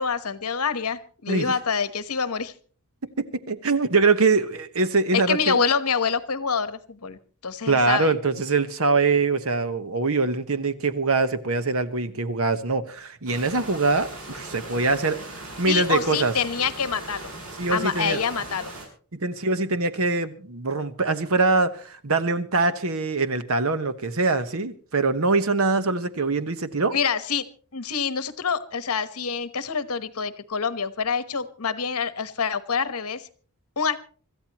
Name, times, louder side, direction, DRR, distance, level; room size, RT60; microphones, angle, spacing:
voice 1, 0.0-2.5 5.1-7.2 7.4-8.1 15.6-17.3 17.7-18.7 26.9-27.4 27.7-33.3 33.8-34.0, left 6 dB, 80° left, 1.1 m, -26 dB
voice 2, 3.2-5.6 7.7-15.2 15.6-16.3 17.6-18.2 19.2-26.9, right 3 dB, 65° right, 1.2 m, -23 dB
sound 1, 13.3-18.9, right 2 dB, 90° right, 7.7 m, -39 dB
25.5 x 14.0 x 3.0 m
head